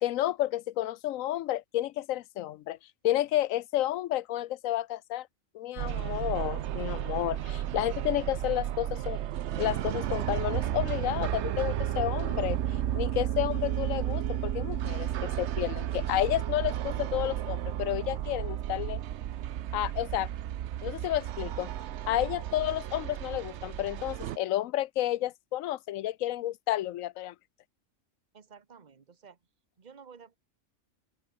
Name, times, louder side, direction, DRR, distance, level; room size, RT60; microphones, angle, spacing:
voice 1, 0.0-2.8 3.0-5.3 5.5-9.2 9.6-19.0 19.7-20.3 20.8-21.7 22.1-27.3, left 14 dB, 85° left, 1.0 m, -31 dB
sound 1, 5.8-24.4, right 12 dB, 65° right, 0.9 m, -33 dB
voice 2, 28.3-29.4 29.8-30.3, right 6 dB, 35° right, 1.3 m, -52 dB
open air
omnidirectional pair, 1.4 m